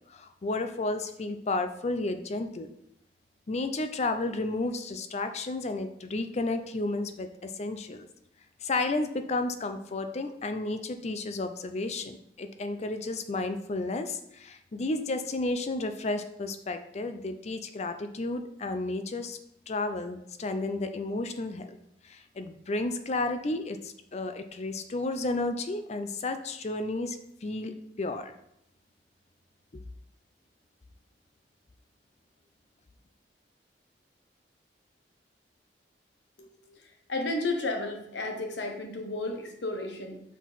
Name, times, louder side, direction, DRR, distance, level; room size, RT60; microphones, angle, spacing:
voice 1, 0.1-2.7 3.5-8.1 8.6-19.4 19.7-21.8 22.0-28.3 29.7-29.8, left 2 dB, 40° left, 8 dB, 0.5 m, -32 dB
voice 2, 36.4-40.2, left 2 dB, 90° left, 3 dB, 1.1 m, -33 dB
6.0 x 4.6 x 4.0 m, 0.76 s
head